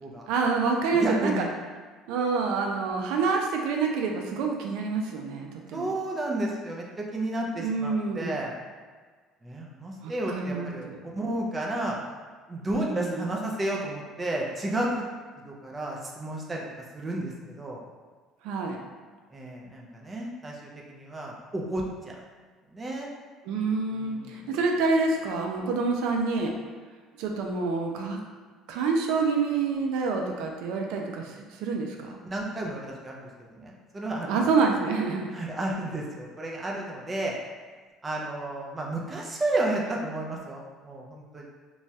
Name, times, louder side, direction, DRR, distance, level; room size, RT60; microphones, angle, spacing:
voice 1, 0.3-1.4 2.1-5.9 7.6-8.4 10.0-11.0 12.7-13.2 18.4-18.8 23.5-26.5 27.2-28.2 28.7-32.2 34.3-35.3, right 4 dB, 80° right, 1 dB, 0.3 m, -27 dB
voice 2, 1.0-1.5 5.7-8.5 9.4-10.9 11.1-12.0 12.5-15.0 15.5-16.6 16.9-17.8 19.3-22.2 22.7-23.1 23.9-24.5 32.2-34.4 35.3-37.3 38.0-41.5, right 1 dB, 20° right, -2 dB, 0.4 m, -32 dB
3.0 x 2.2 x 2.7 m, 1.4 s
cardioid pair, 140°, 0 cm